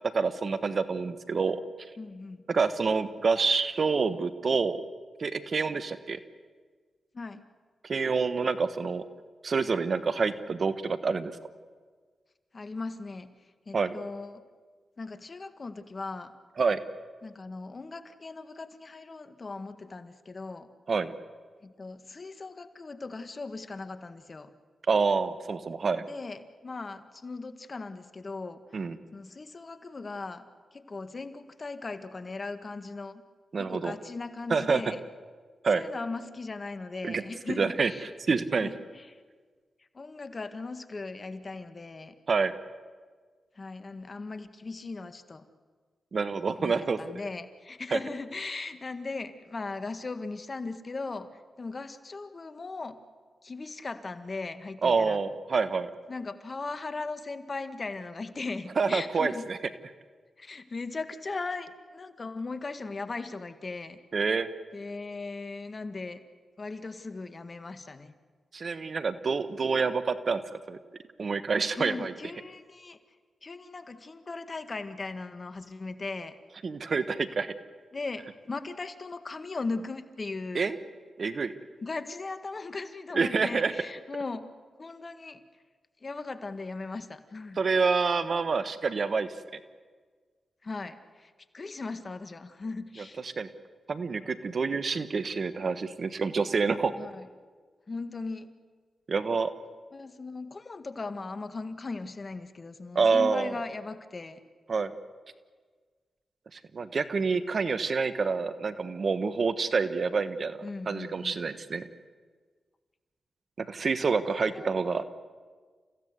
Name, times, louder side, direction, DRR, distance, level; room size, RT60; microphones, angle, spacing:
voice 1, 0.1-1.6 2.5-4.8 5.2-6.2 7.8-9.0 9.4-11.4 13.7-13.9 16.6-16.8 20.9-21.1 24.9-26.0 28.7-29.0 33.5-33.9 34.5-34.8 35.6-35.8 37.0-37.2 37.6-37.9 38.3-38.7 42.3-42.5 46.1-47.0 47.9-48.0 54.8-55.9 58.8-59.6 64.1-64.5 68.5-70.4 70.7-70.8 71.2-72.1 76.6-77.5 80.5-80.8 81.2-81.5 83.1-83.7 87.6-89.6 93.2-93.5 93.9-96.9 99.1-99.5 102.9-103.5 104.7-104.9 106.5-111.9 113.6-115.0, right 4 dB, 60° right, 12 dB, 1.3 m, -27 dB
voice 2, 2.0-2.5 7.1-7.4 12.5-13.3 13.6-14.4 15.0-16.3 17.2-20.7 21.6-24.5 26.1-28.6 29.1-30.5 30.7-33.2 33.6-35.0 35.7-38.0 38.6-39.2 39.9-42.1 43.5-45.5 46.6-53.0 53.4-55.2 56.1-59.5 60.4-64.0 64.7-66.2 66.6-68.1 71.7-73.0 73.4-76.4 77.9-80.7 81.8-84.5 84.8-85.4 86.0-87.6 90.6-93.2 97.0-97.3 97.9-98.5 99.9-104.4 110.6-111.4 114.1-115.0, left 3 dB, 45° left, 10 dB, 1.7 m, -38 dB
29.5 x 16.0 x 8.2 m, 1.5 s
supercardioid pair, 40°, 0 cm